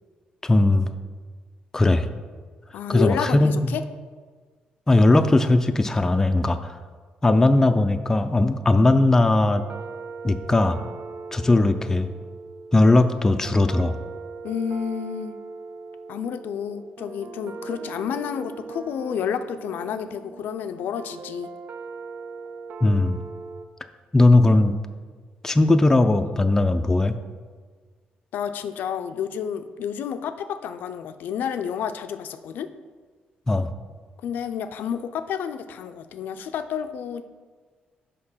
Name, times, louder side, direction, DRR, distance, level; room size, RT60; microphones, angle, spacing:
voice 1, 0.4-0.9 1.7-2.1 2.9-3.7 4.9-6.8 7.2-9.6 10.2-10.8 11.3-12.1 12.7-14.0 22.8-23.2 24.1-24.8 25.4-27.2 33.5-33.7, left 2 dB, 15° left, 8 dB, 0.4 m, -18 dB
voice 2, 2.7-3.8 14.4-15.4 16.1-21.5 28.3-32.7 34.2-37.2, left 8 dB, 75° left, 9 dB, 0.4 m, -30 dB
sound 1, 9.4-23.7, right 4 dB, 55° right, 0.4 m, -39 dB
6.5 x 5.2 x 5.6 m, 1.5 s
cardioid pair, 130°, 3 cm